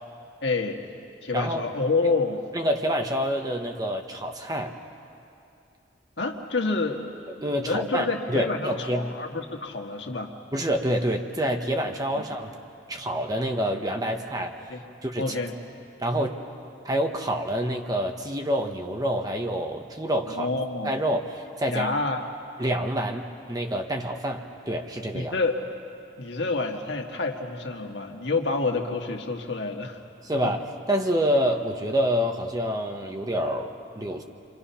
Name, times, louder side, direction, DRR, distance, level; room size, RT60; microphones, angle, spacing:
voice 1, 0.4-0.8 1.2-2.4 6.2-7.0 7.7-10.3 12.1-12.2 14.7-14.8 15.2-15.5 20.3-20.9 21.7-22.2 25.1-25.6 26.2-30.0 30.4-30.5, left 3 dB, 75° left, 2 dB, 1.9 m, -28 dB
voice 2, 2.5-4.8 7.4-9.1 10.5-12.5 12.9-14.6 15.0-15.3 16.0-16.4 16.8-20.5 20.8-21.9 22.6-25.3 30.2-34.2, equal, 20° right, 3 dB, 1.3 m, -27 dB
29.0 x 25.0 x 5.8 m, 2.6 s
head